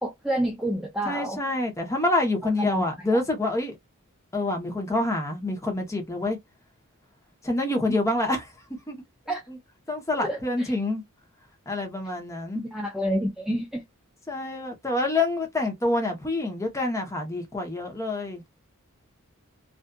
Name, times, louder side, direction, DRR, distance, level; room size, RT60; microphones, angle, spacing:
voice 1, 0.0-1.4 2.6-3.2 9.3-9.4 10.2-10.7 12.7-13.8, equal, 5° right, 0.4 m, -29 dB
voice 2, 1.0-3.8 4.3-6.4 7.4-8.5 8.9-9.0 9.5-9.6 9.9-11.0 11.7-12.6 14.3-18.4, left 2 dB, 15° left, 0.8 m, -27 dB
2.6 x 2.3 x 2.2 m
head